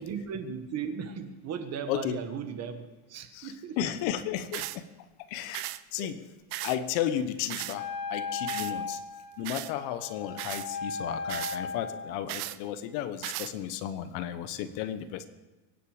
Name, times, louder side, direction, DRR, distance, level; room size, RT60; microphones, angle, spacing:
voice 1, 0.0-3.8 6.0-6.1, right 6 dB, 30° right, 8 dB, 1.4 m, -37 dB
voice 2, 1.9-2.2 3.3-6.2 6.6-9.0 9.4-15.3, left 10 dB, 60° left, 12 dB, 1.2 m, -34 dB
sound 1, 4.5-4.8 5.5-5.8 6.5-6.8 7.5-7.8 8.5-8.7 9.5-9.7 10.4-10.7 11.3-11.6 12.3-12.6 13.2-13.5, right 18 dB, 50° right, 0.6 m, -36 dB
Wind instrument woodwind instrument, 7.7-12.3, left 4 dB, 40° left, 1.8 m, -36 dB
24.0 x 10.0 x 5.0 m, 1.1 s
cardioid pair, 165°, 50 cm